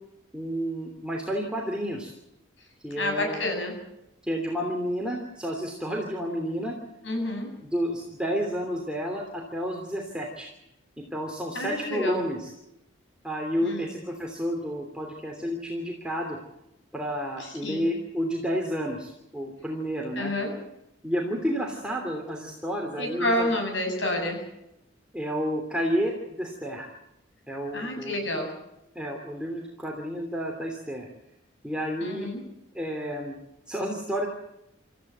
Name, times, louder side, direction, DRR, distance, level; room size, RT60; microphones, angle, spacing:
voice 1, 0.3-2.1 2.8-3.4 4.2-6.7 7.6-10.5 11.0-12.5 13.2-16.4 16.9-20.3 21.0-23.5 25.1-26.9 27.5-28.4 28.9-31.1 31.6-32.3 32.7-33.4 33.7-34.3, equal, 5° right, -1 dB, 2.9 m, -30 dB
voice 2, 3.0-3.8 7.0-7.5 11.5-12.2 13.6-13.9 17.4-17.9 20.2-20.5 23.0-24.4 27.7-28.5 32.0-32.4, left 1 dB, 70° left, 3 dB, 7.9 m, -29 dB
28.0 x 14.5 x 8.0 m, 0.87 s
head